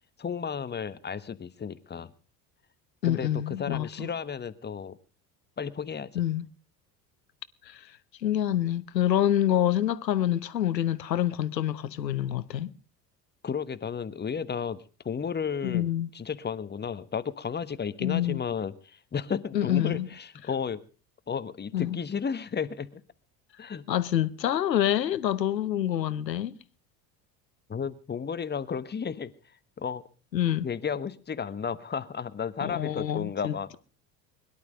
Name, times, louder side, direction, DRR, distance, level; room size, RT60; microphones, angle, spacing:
voice 1, 0.2-2.1 3.0-5.0 5.6-6.1 13.4-20.8 21.3-23.0 23.6-23.8 27.7-29.3 29.8-30.0 30.6-33.7, left 6 dB, 20° left, 1.3 m, -33 dB
voice 2, 3.0-4.1 6.1-6.5 7.7-7.8 8.2-12.7 15.6-16.1 18.0-18.4 19.5-20.1 21.7-22.0 23.9-26.5 30.3-30.7 32.6-33.8, left 11 dB, 85° left, 1.0 m, -27 dB
22.0 x 11.5 x 5.1 m
figure-of-eight pair, 65°, 49 cm